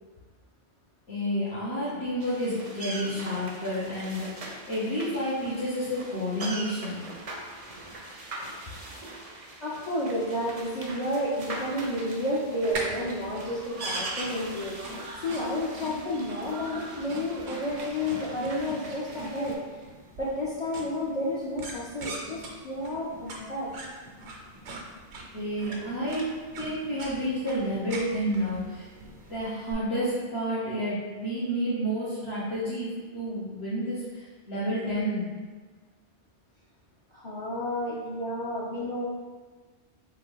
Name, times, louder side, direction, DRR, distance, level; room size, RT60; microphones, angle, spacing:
voice 1, 1.1-7.0 25.3-26.2 26.6-28.9 29.3-35.2, equal, 70° left, -13 dB, 1.4 m, -30 dB
sound 1, 2.2-19.5, right 2 dB, 45° right, 0.5 m, -41 dB
voice 2, 9.6-14.8 15.2-19.6 20.2-23.7 37.1-39.0, left 1 dB, 40° left, -7 dB, 0.7 m, -31 dB
sound 2, 12.7-29.7, right 2 dB, 85° right, 1.0 m, -42 dB
3.7 x 2.7 x 4.5 m, 1.4 s
omnidirectional pair, 1.1 m